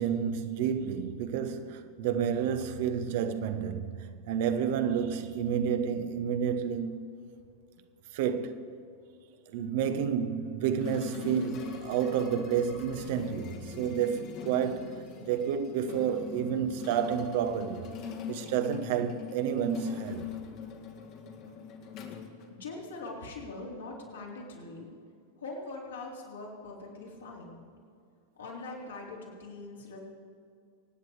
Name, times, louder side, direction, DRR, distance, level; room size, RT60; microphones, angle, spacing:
voice 1, 0.0-7.0 8.1-8.6 9.5-17.9 18.3-20.3, right 8 dB, 50° right, 1.0 m, -30 dB
sound 1, 10.8-23.1, left 7 dB, 40° left, 1.8 m, -42 dB
voice 2, 22.5-24.9 25.4-27.6 28.3-30.0, left 3 dB, 65° left, 3.9 m, -42 dB
24.5 x 9.5 x 4.9 m
figure-of-eight pair, 90°, 0 cm